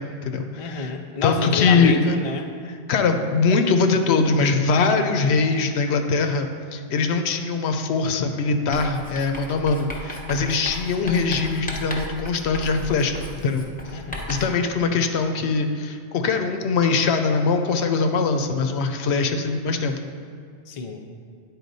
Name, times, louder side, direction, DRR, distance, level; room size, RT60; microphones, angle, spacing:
voice 1, 0.0-0.9 1.2-2.2 2.6-13.6 14.3-20.0, left 4 dB, 75° left, 6 dB, 0.8 m, -22 dB
voice 2, 0.6-2.5 13.9-14.3 20.7-21.0, left 5 dB, 45° left, 3 dB, 0.5 m, -29 dB
Writing, 8.7-14.6, left 1 dB, 10° left, 0.7 m, -36 dB
9.6 x 4.2 x 4.0 m, 2.3 s
omnidirectional pair, 1.2 m